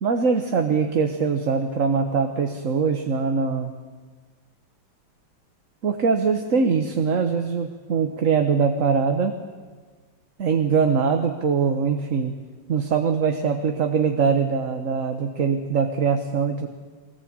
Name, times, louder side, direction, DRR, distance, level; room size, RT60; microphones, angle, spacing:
voice 1, 0.0-3.7 5.8-9.4 10.4-12.3 12.7-16.7, right 5 dB, 45° right, 5 dB, 1.4 m, -22 dB
24.0 x 19.5 x 8.8 m, 1.5 s
omnidirectional pair, 2.0 m